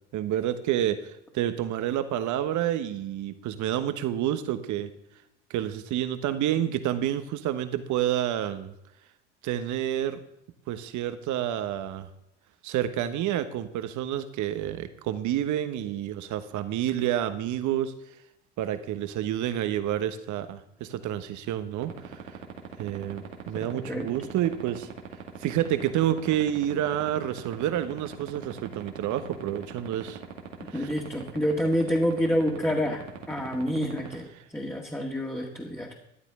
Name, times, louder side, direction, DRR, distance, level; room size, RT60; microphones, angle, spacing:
voice 1, 0.1-4.9 5.5-8.7 9.4-10.2 10.7-12.1 12.6-17.9 18.6-22.2 22.8-24.9 25.4-30.2 30.7-30.9, right 11 dB, 50° right, 11 dB, 1.3 m, -29 dB
sound 1, 21.8-34.1, right 9 dB, 85° right, 2.2 m, -38 dB
voice 2, 23.6-24.1 30.6-35.9, equal, 5° left, -1 dB, 2.1 m, -28 dB
14.0 x 11.5 x 3.8 m, 0.83 s
hypercardioid pair, 70°, 38 cm